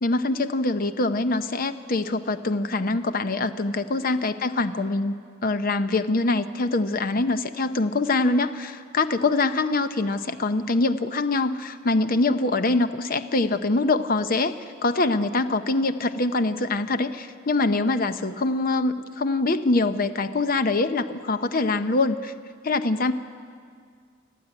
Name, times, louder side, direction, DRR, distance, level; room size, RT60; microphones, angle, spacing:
voice 1, 0.0-5.1 5.4-14.6 14.8-22.3 22.6-23.1, left 2 dB, 45° left, 10 dB, 0.7 m, -24 dB
28.5 x 9.4 x 9.7 m, 2.1 s
head